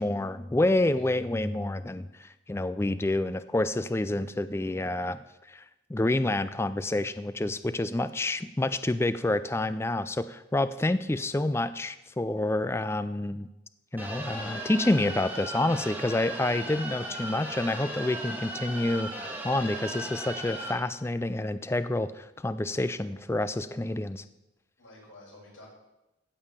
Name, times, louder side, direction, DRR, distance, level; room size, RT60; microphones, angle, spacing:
voice 1, 0.0-5.2 5.5-5.6 5.9-13.5 13.9-24.2, left 2 dB, 15° left, 13 dB, 0.3 m, -28 dB
voice 2, 0.8-1.1 24.8-25.7, left 2 dB, 90° left, -6 dB, 5.7 m, -51 dB
sound 1, 14.0-20.7, right 1 dB, 10° right, 1.6 m, -37 dB
15.5 x 5.4 x 7.3 m, 0.95 s
head